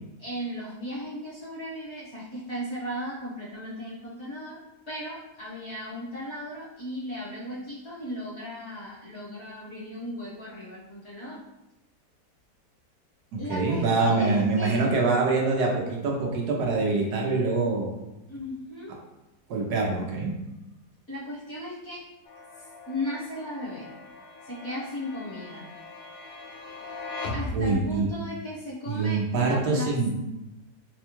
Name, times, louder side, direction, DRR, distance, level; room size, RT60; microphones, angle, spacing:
voice 1, 0.2-4.6 4.9-11.4 13.4-14.9 18.3-18.9 21.1-22.0 22.9-23.9 24.4-25.7 27.3-30.1, equal, 45° left, -8 dB, 1.2 m, -36 dB
voice 2, 13.3-17.9 19.5-20.3 27.5-28.1 28.9-30.1, right 3 dB, 75° right, -1 dB, 1.2 m, -25 dB
sound 1, 22.3-28.2, left 2 dB, 70° left, 0.9 m, -39 dB
4.1 x 2.2 x 2.9 m, 0.94 s
omnidirectional pair, 1.8 m